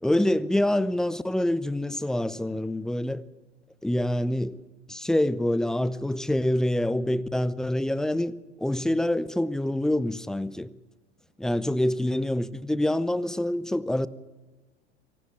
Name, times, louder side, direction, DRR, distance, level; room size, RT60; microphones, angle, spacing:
voice 1, 0.0-3.2 3.8-4.6 4.9-10.7 11.4-14.1, left 1 dB, ahead, 0.8 m, -26 dB
26.0 x 18.0 x 9.0 m
figure-of-eight pair, 80°, 34 cm